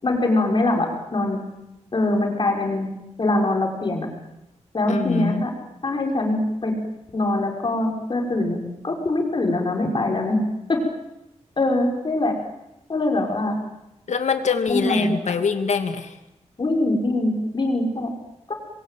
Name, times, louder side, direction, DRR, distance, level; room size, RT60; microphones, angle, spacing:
voice 1, 0.0-1.4 1.9-2.9 3.2-4.1 4.7-5.5 5.8-6.7 7.1-8.6 8.8-10.4 10.7-10.8 11.6-12.3 12.9-13.5 14.7-15.2 16.6-18.1 18.5-18.6, left 2 dB, 40° left, 2 dB, 5.8 m, -23 dB
voice 2, 4.9-5.4 14.1-16.2, left 5 dB, 80° left, 7 dB, 2.5 m, -24 dB
27.0 x 22.5 x 9.3 m, 0.91 s
wide cardioid pair, 140°, 12 cm